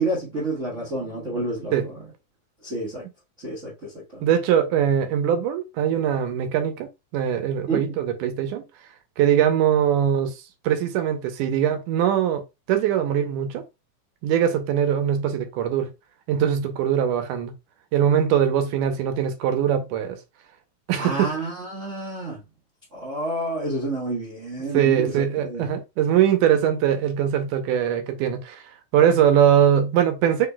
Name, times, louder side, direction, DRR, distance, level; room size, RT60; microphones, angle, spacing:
voice 1, 0.0-1.9 2.6-3.0 3.4-4.3 7.7-7.9 21.0-22.4 22.9-25.1 25.4-25.7, right 2 dB, 35° right, 1.2 m, -29 dB
voice 2, 4.2-6.9 7.1-8.6 9.2-12.4 12.7-13.6 14.2-15.9 16.3-17.5 17.9-20.2 20.9-21.3 24.7-28.6 28.9-30.5, right 9 dB, 90° right, 2.3 m, -21 dB
5.1 x 3.9 x 2.2 m
omnidirectional pair, 3.6 m